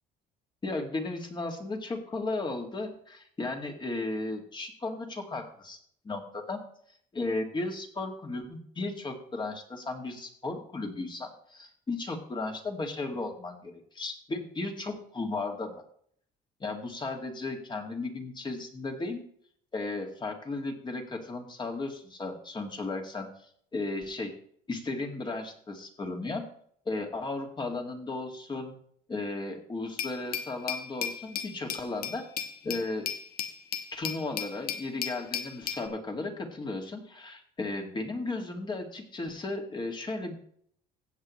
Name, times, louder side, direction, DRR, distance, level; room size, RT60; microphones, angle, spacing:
voice 1, 0.6-5.8 6.0-6.6 7.1-15.7 16.6-19.2 19.7-23.3 23.7-24.3 24.7-26.4 26.9-28.7 29.1-32.2 32.6-33.1 33.9-40.3, left 2 dB, 25° left, 3 dB, 2.2 m, -35 dB
Glass, 30.0-35.9, left 8 dB, 60° left, 1.3 m, -36 dB
15.5 x 8.1 x 3.2 m, 0.62 s
cardioid pair, 110°, 17 cm